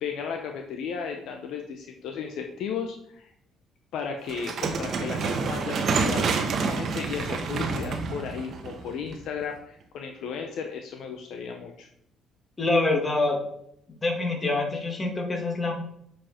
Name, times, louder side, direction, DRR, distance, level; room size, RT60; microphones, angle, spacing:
voice 1, 0.0-3.3 3.9-11.9, left 6 dB, 75° left, 4 dB, 0.8 m, -35 dB
sound 1, 4.3-9.4, right 4 dB, 55° right, 1.1 m, -28 dB
voice 2, 12.6-13.4 13.9-15.7, left 2 dB, 30° left, 0 dB, 2.2 m, -25 dB
7.0 x 5.1 x 4.4 m, 0.73 s
cardioid pair, 85°, 0 cm